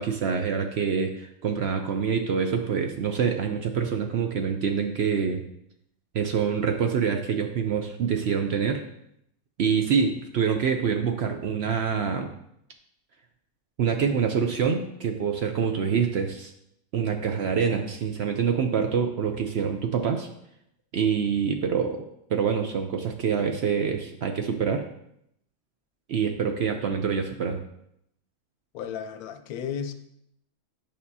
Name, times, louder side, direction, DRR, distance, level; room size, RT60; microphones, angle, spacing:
voice 1, 0.0-5.4 6.1-8.8 9.6-12.3 13.8-16.5 16.9-20.3 20.9-22.0 22.3-24.9 26.1-27.6, right 6 dB, 60° right, 5 dB, 0.7 m, -26 dB
voice 2, 28.7-29.9, left 8 dB, 85° left, 9 dB, 1.1 m, -33 dB
9.4 x 5.3 x 2.7 m, 0.76 s
omnidirectional pair, 1.5 m